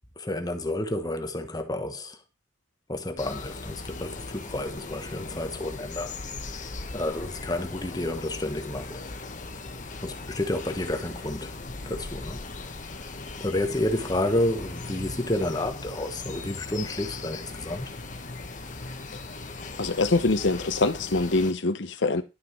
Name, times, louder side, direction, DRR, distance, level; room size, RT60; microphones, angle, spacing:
voice 1, 0.2-2.2 2.9-6.2 6.9-9.0 10.0-11.6 11.9-12.7 13.4-17.9, left 1 dB, 20° left, 1.2 m, -30 dB
sound 1, 3.2-21.5, left 3 dB, 40° left, 1.3 m, -38 dB
voice 2, 19.8-22.2, left 3 dB, 65° left, 0.9 m, -24 dB
11.5 x 6.3 x 4.5 m
head